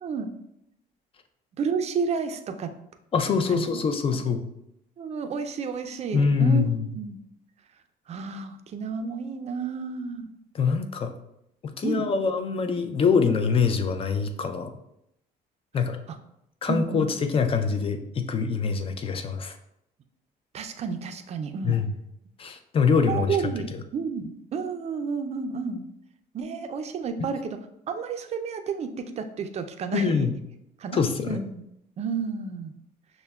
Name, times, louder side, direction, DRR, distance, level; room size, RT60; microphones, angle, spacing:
voice 1, 0.0-0.3 1.6-2.7 3.5-3.8 5.0-6.6 6.9-7.2 8.1-10.3 11.8-12.1 16.1-16.2 16.7-17.0 20.5-21.7 23.0-25.9 26.3-27.6 27.9-30.3 30.8-31.0 31.3-31.7 32.0-32.7, right 5 dB, 40° right, 7 dB, 0.4 m, -31 dB
voice 2, 3.1-4.5 6.1-7.0 10.5-11.2 11.6-14.7 15.7-16.0 16.6-19.6 21.6-22.0 22.4-23.4 23.7-23.8 27.2-27.3 29.9-30.4 30.9-31.4, left 5 dB, 35° left, 7 dB, 0.4 m, -24 dB
6.3 x 2.1 x 2.3 m, 0.79 s
cardioid pair, 110°, 17 cm